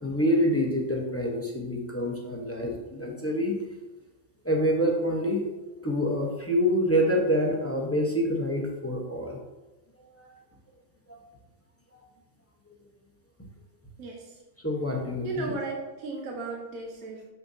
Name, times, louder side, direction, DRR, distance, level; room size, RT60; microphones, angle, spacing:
voice 1, 0.0-3.5 4.4-5.4 5.8-9.4 10.0-10.4 11.1-11.2 11.9-12.0 14.6-15.5, equal, 10° left, -1 dB, 0.8 m, -27 dB
voice 2, 14.0-14.3 15.2-17.3, right 3 dB, 70° right, 0 dB, 1.4 m, -35 dB
6.8 x 6.6 x 2.7 m, 1.1 s
omnidirectional pair, 1.5 m